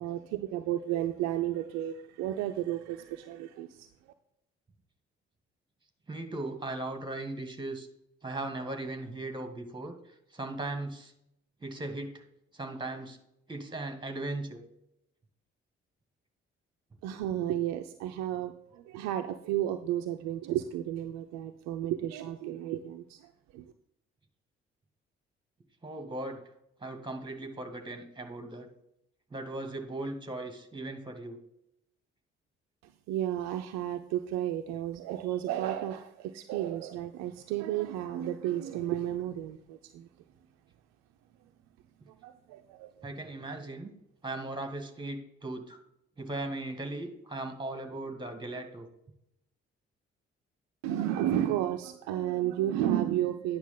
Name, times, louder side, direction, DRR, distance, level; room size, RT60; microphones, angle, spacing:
voice 1, 0.0-3.9 17.0-23.7 32.8-40.1 42.1-42.9 50.8-53.6, right 12 dB, 60° right, 7 dB, 0.5 m, -32 dB
voice 2, 6.1-7.9 8.2-9.9 10.3-11.1 11.6-12.2 12.5-13.2 13.5-14.6 25.8-26.4 26.8-28.7 29.3-31.4 43.0-43.9 44.2-45.8 46.2-48.9, right 2 dB, 15° right, 6 dB, 1.6 m, -38 dB
9.3 x 6.1 x 3.8 m, 0.80 s
figure-of-eight pair, 40°, 31 cm